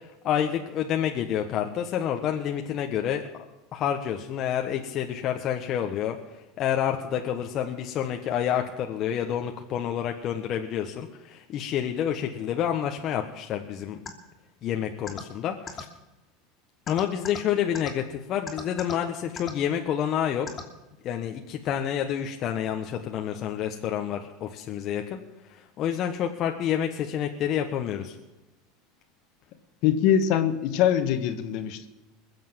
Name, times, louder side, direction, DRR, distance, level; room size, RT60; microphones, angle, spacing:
voice 1, 0.2-3.2 3.7-6.2 6.6-14.0 14.6-15.9 16.9-20.5 21.0-25.2 25.5-28.1, left 9 dB, 45° left, 3 dB, 1.3 m, -28 dB
sound 1, 14.0-14.1 15.1-15.2 15.7-15.8 16.9-17.4 17.7-17.9 18.5-18.9 19.4-19.5 20.5-20.6, left 6 dB, 25° left, 2.9 m, -35 dB
voice 2, 29.8-31.9, left 9 dB, 60° left, 9 dB, 1.7 m, -23 dB
21.5 x 7.6 x 7.4 m, 1.1 s
supercardioid pair, 115°, 0 cm